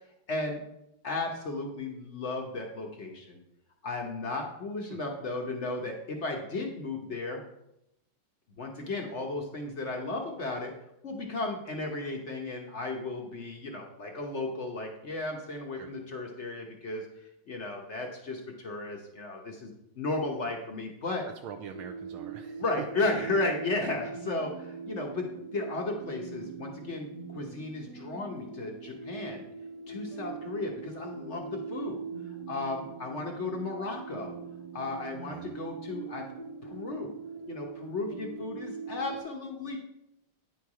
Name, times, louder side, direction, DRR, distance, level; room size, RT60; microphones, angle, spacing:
voice 1, 0.3-0.6 1.0-3.4 3.8-7.4 8.6-10.7 11.0-21.3 22.6-25.3 25.5-29.5 29.9-32.0 32.5-34.3 34.7-36.3 36.6-37.1 37.5-39.8, left 2 dB, 55° left, 1 dB, 0.7 m, -34 dB
voice 2, 21.4-22.6 35.3-35.6, right 7 dB, 80° right, 4 dB, 1.4 m, -44 dB
sound 1, 21.7-39.2, right 5 dB, 55° right, 1.7 m, -42 dB
9.3 x 4.5 x 4.7 m, 0.83 s
omnidirectional pair, 2.4 m